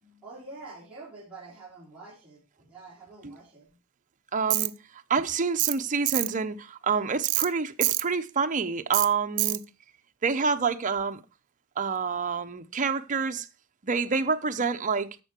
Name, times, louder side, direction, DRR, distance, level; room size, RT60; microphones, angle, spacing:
voice 1, 0.0-3.8, right 3 dB, 5° right, 3.8 m, -47 dB
voice 2, 4.3-9.6 10.2-11.2 11.8-13.5 13.8-15.1, right 5 dB, 35° right, 0.7 m, -28 dB
Tools, 4.5-4.7 5.6-5.8 6.1-6.3 7.2-7.5 7.8-8.0 8.9-9.1 9.4-9.6, right 19 dB, 90° right, 0.5 m, -25 dB
11.5 x 6.7 x 4.4 m
head